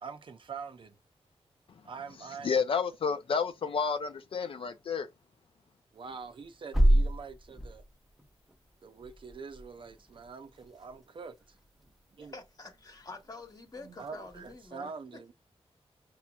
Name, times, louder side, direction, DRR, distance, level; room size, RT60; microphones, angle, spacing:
voice 1, 0.0-1.0 1.8-2.6 5.9-7.8 8.8-11.6 12.2-12.4 13.8-15.3, right 5 dB, 50° right, 0.5 m, -44 dB
voice 2, 2.4-5.1, left 5 dB, 55° left, 0.4 m, -30 dB
sound 1, 6.1-14.7, right 1 dB, ahead, 0.7 m, -32 dB
voice 3, 12.3-14.9, left 3 dB, 35° left, 1.1 m, -47 dB
6.0 x 2.9 x 2.3 m
wide cardioid pair, 135°, 11 cm